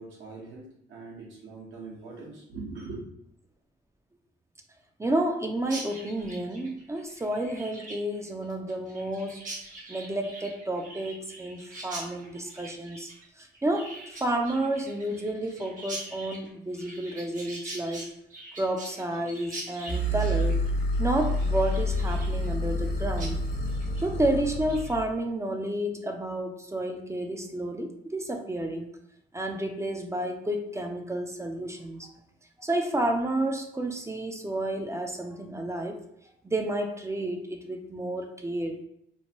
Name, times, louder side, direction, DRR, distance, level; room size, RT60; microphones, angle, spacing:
voice 1, 0.0-3.0, right 3 dB, 75° right, -3 dB, 1.1 m, -42 dB
voice 2, 5.0-9.5 9.9-13.1 13.4-18.0 18.6-20.6 21.0-23.4 24.0-28.9 29.3-32.1 32.6-36.0 36.4-38.8, right 1 dB, 15° right, 4 dB, 0.3 m, -30 dB
Chirp tweet, 5.6-22.9 23.2-23.3 23.7-24.1 24.4-24.9, right 2 dB, 40° right, 0.9 m, -43 dB
sound 1, 19.9-25.1, equal, 70° left, 0.9 m, -28 dB
3.0 x 2.1 x 2.9 m, 0.75 s
cardioid pair, 90°, 20 cm